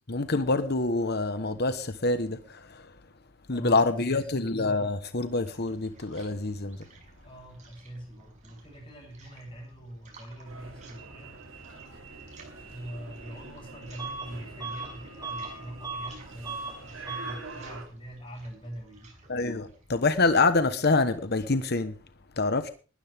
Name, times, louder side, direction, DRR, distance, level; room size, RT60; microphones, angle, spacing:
voice 1, 0.1-2.9 3.5-6.8 19.3-21.9 22.4-22.7, left 3 dB, 50° left, 1.2 m, -26 dB
voice 2, 3.5-4.3 7.2-11.4 12.7-19.1, right 1 dB, 25° left, 7.9 m, -43 dB
sound 1, 4.8-20.8, right 2 dB, 35° right, 6.3 m, -56 dB
sound 2, 10.4-17.8, right 3 dB, 65° right, 3.6 m, -45 dB
Bus / Alarm, 14.0-14.3 14.6-16.2 16.4-16.8 17.0-17.4, right 4 dB, 15° right, 3.7 m, -37 dB
20.0 x 13.0 x 3.6 m
head